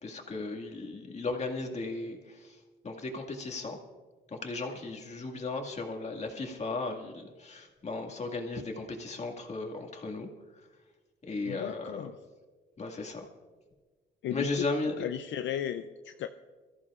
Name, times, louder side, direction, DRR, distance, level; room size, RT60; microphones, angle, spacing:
voice 1, 0.0-2.6 2.8-3.8 4.3-10.3 11.3-12.1 12.8-13.2 14.3-15.1, left 3 dB, 35° left, 2 dB, 2.0 m, -36 dB
voice 2, 11.4-12.1 14.2-14.5 15.0-16.3, left 10 dB, 70° left, 8 dB, 0.5 m, -35 dB
23.0 x 14.0 x 2.5 m, 1.4 s
cardioid pair, 90°, 20 cm